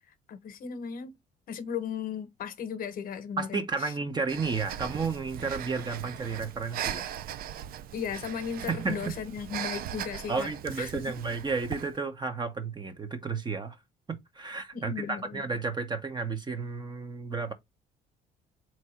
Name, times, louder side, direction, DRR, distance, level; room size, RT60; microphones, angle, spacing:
voice 1, 0.3-1.2 1.5-3.9 7.9-10.5 10.8-10.9 14.7-15.4, left 7 dB, 60° left, 1.0 m, -36 dB
voice 2, 3.4-7.1 8.7-9.1 10.3-13.8 14.1-17.5, right 4 dB, 25° right, 1.1 m, -32 dB
Breathing, 4.3-12.0, right 11 dB, 60° right, 0.5 m, -39 dB
3.7 x 3.1 x 4.3 m
cardioid pair, 110°, 17 cm